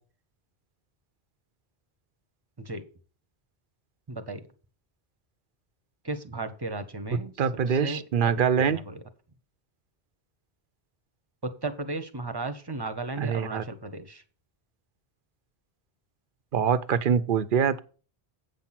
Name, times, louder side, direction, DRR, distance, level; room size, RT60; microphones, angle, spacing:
voice 1, 4.1-4.5 6.0-7.3 7.7-9.0 11.4-14.2, right 2 dB, 25° right, 1.0 m, -35 dB
voice 2, 7.4-8.8 13.2-13.6 16.5-17.8, right 7 dB, 60° right, 0.8 m, -24 dB
8.4 x 6.0 x 5.8 m
omnidirectional pair, 1.0 m